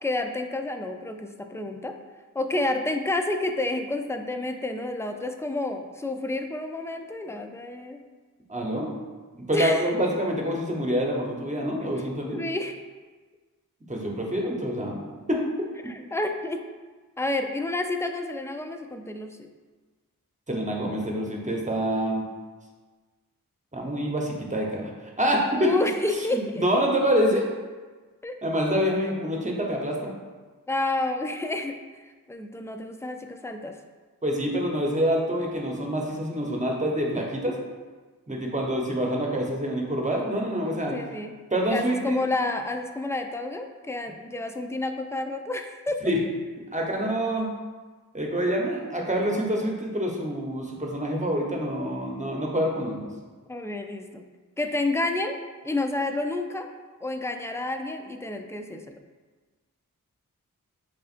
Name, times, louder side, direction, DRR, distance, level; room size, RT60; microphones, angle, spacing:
voice 1, 0.0-2.0 2.3-8.0 9.5-9.9 12.3-12.7 15.9-16.6 17.2-19.5 25.6-26.6 28.2-28.4 30.7-33.8 38.7-38.8 40.9-41.3 41.7-46.0 47.0-47.1 53.5-54.2 54.6-55.4 55.6-56.7 57.0-58.9, left 2 dB, 10° left, 6 dB, 0.3 m, -30 dB
voice 2, 8.5-8.9 9.3-12.4 13.9-15.0 15.3-15.4 20.5-22.3 23.7-24.9 25.2-25.7 26.1-27.5 28.4-30.1 34.2-37.6 38.3-40.9 41.5-42.3 46.0-46.2 46.7-47.5 48.1-53.1, equal, 20° right, -1 dB, 0.9 m, -26 dB
7.0 x 2.4 x 2.5 m, 1.3 s
cardioid pair, 45°, 34 cm